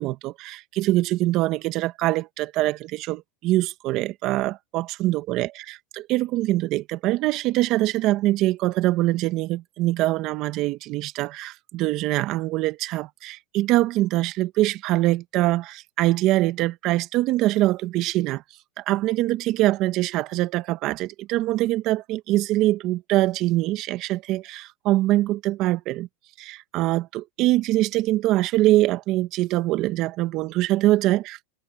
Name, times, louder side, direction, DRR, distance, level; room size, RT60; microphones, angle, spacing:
voice 1, 0.0-18.4 18.8-26.1 26.4-31.4, right 16 dB, 50° right, 1.4 m, -23 dB
hypercardioid pair, 115°, 0 cm